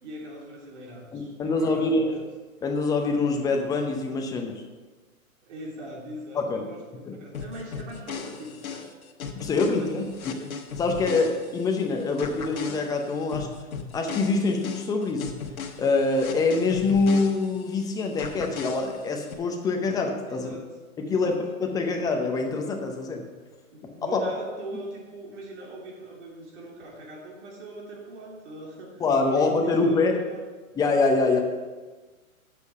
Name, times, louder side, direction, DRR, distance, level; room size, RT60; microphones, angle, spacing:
voice 1, 0.0-2.1 5.4-8.9 9.5-10.5 20.3-20.6 21.0-21.4 23.7-30.4 31.2-31.4, right 1 dB, 55° right, -2 dB, 3.1 m, -41 dB
voice 2, 1.1-2.0 2.6-4.6 6.3-6.7 7.1-7.2 9.3-13.5 13.9-15.3 15.8-20.5 21.0-23.2 24.1-24.2 29.0-30.2 30.8-31.4, left 3 dB, 10° left, 3 dB, 0.6 m, -25 dB
sound 1, 7.3-11.8 12.2-17.8 18.2-19.3, left 6 dB, 70° left, 1.2 m, -37 dB
8.2 x 6.8 x 5.6 m, 1.3 s
hypercardioid pair, 130°, 43 cm